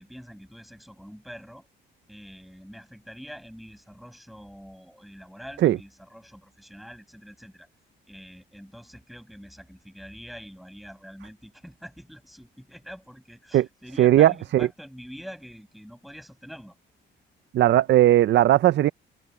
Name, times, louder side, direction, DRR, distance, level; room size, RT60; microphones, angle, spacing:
voice 1, 0.0-1.7 2.1-7.7 8.1-16.7, equal, ahead, 6.9 m, -45 dB
voice 2, 14.0-14.7 17.5-18.9, right 13 dB, 65° right, 0.5 m, -18 dB
cardioid pair, 90°, 20 cm